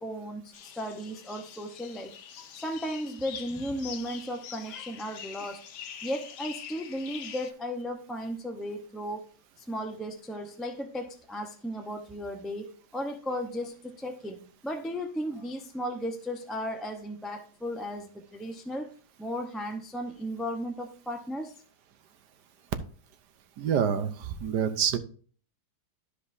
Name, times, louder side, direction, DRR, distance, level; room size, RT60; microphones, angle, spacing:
voice 1, 0.0-2.1 2.4-5.6 6.0-9.2 9.7-18.9 19.2-21.5, equal, ahead, 0.5 m, -35 dB
sound 1, 0.5-7.5, left 9 dB, 80° left, 1.3 m, -44 dB
voice 2, 23.6-25.0, right 8 dB, 85° right, 1.4 m, -27 dB
13.0 x 4.9 x 2.7 m
omnidirectional pair, 1.8 m